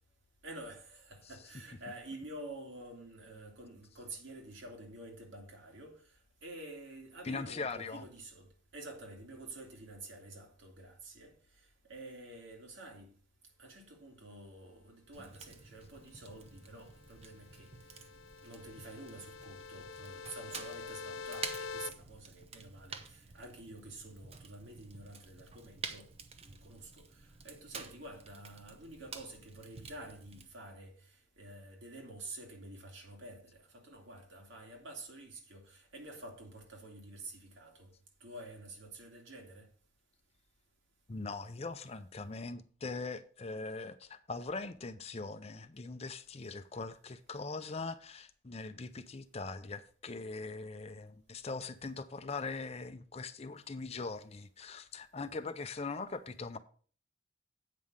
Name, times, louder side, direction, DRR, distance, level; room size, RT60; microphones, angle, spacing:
voice 1, 0.4-6.1 6.4-13.1 13.6-18.0 18.4-26.1 26.4-37.9 38.2-39.7, right 2 dB, 70° right, 2.5 m, -49 dB
voice 2, 7.2-8.0 41.1-56.6, left 3 dB, 30° left, 0.5 m, -41 dB
Fire, 15.1-30.5, right 5 dB, 30° right, 0.8 m, -49 dB
sound 1, 17.0-21.9, left 5 dB, 80° left, 0.6 m, -46 dB
8.4 x 5.6 x 6.4 m
head